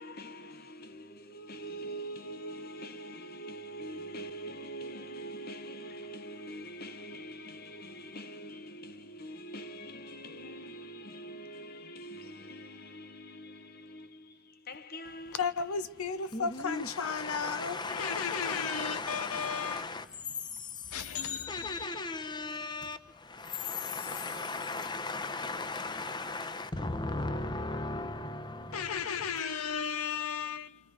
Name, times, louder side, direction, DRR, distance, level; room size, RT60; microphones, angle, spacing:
voice 1, 0.0-15.4, right 1 dB, 45° left, 0.9 m, -44 dB
voice 2, 15.3-19.8 20.9-22.0 28.7-30.8, left 6 dB, 75° left, 0.6 m, -34 dB
voice 3, 16.3-29.4, left 3 dB, 20° left, 0.7 m, -37 dB
28.0 x 27.0 x 4.9 m
head